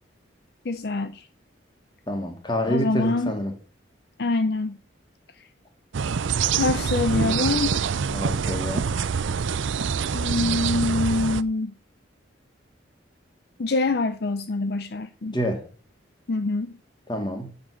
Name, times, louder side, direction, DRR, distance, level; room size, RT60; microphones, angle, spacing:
voice 1, 0.6-1.3 2.6-3.3 4.2-4.8 5.4-5.5 6.5-7.9 10.1-11.7 13.6-15.4 16.3-16.8, left 3 dB, 55° left, 0.5 m, -25 dB
voice 2, 2.1-3.5 7.1-7.6 8.1-8.9 15.3-15.6 17.1-17.5, equal, 25° left, 1.9 m, -28 dB
sound 1, 5.9-11.4, right 6 dB, 80° right, 0.5 m, -25 dB
10.0 x 5.3 x 6.2 m
head